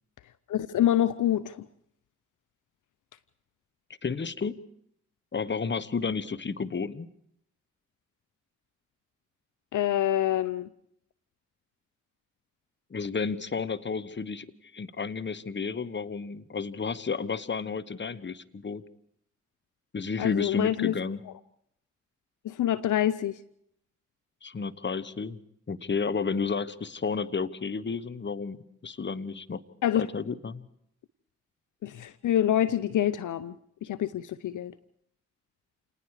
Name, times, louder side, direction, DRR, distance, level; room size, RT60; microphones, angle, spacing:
voice 1, 0.5-1.6 9.7-10.7 20.2-20.9 22.4-23.4 29.8-30.1 31.8-33.6 33.8-34.7, left 11 dB, 70° left, 16 dB, 0.7 m, -26 dB
voice 2, 4.0-4.6 5.3-7.1 12.9-14.5 14.7-18.8 19.9-21.2 24.4-25.4 25.7-29.6 29.9-30.7, left 5 dB, 35° left, 15 dB, 1.2 m, -32 dB
28.0 x 19.5 x 4.9 m, 0.73 s
supercardioid pair, 45°, 32 cm